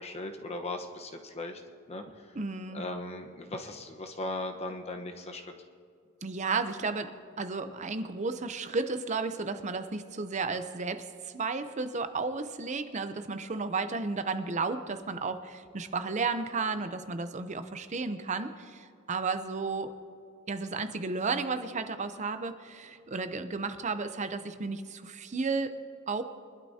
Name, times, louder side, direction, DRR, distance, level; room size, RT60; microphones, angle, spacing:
voice 1, 0.0-1.6 1.9-2.3 2.7-5.4, left 2 dB, 30° left, 4 dB, 1.0 m, -38 dB
voice 2, 2.3-2.8 6.2-20.0 20.5-25.8 26.1-26.2, right 4 dB, 35° right, 10 dB, 0.6 m, -33 dB
24.5 x 12.0 x 2.8 m, 2.3 s
head